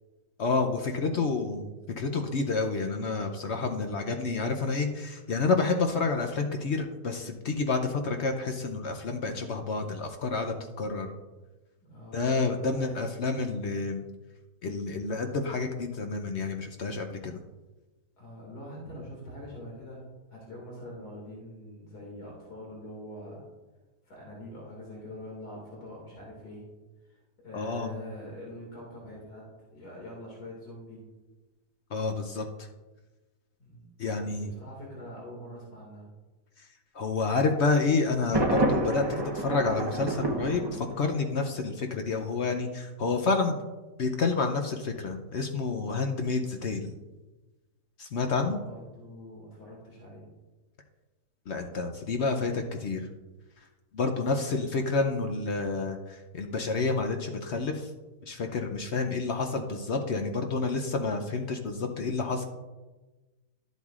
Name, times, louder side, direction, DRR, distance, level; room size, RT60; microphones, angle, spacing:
voice 1, 0.4-1.7 2.0-11.1 12.1-14.0 14.6-17.4 27.5-27.9 31.9-32.5 34.0-34.5 36.6-36.7 36.9-43.6 44.0-46.9 48.0-48.6 51.5-53.1 53.9-57.9 58.3-62.5, left 4 dB, 55° left, 5 dB, 0.8 m, -29 dB
voice 2, 11.8-12.9 18.2-20.0 20.3-23.4 24.0-26.7 27.0-31.0 33.6-36.1 48.2-50.3, equal, 90° left, -4 dB, 2.8 m, -44 dB
Thunder, 38.3-41.3, right 2 dB, 20° right, 0.6 m, -29 dB
12.0 x 8.0 x 2.4 m, 1.2 s
omnidirectional pair, 1.7 m